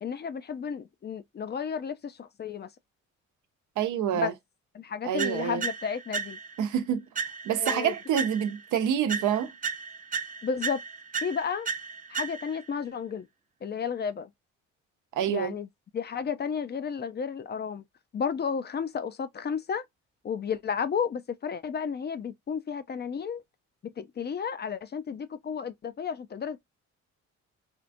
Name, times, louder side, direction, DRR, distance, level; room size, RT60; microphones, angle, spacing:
voice 1, 0.0-2.7 4.1-4.3 4.7-6.4 7.6-7.9 10.4-10.8 11.2-11.7 12.1-13.3 13.6-14.3 15.3-15.7 15.9-17.8 18.1-19.8 20.2-23.4 23.8-26.6, left 6 dB, 35° left, 0.5 m, -32 dB
voice 2, 3.8-4.3 5.0-5.6 6.6-7.0 7.4-9.5 15.1-15.5, right 9 dB, 80° right, 0.8 m, -27 dB
sound 1, 5.2-6.7 7.1-8.7 9.1-12.7, right 6 dB, 25° right, 0.6 m, -35 dB
4.4 x 2.3 x 2.5 m
cardioid pair, 90°, 30 cm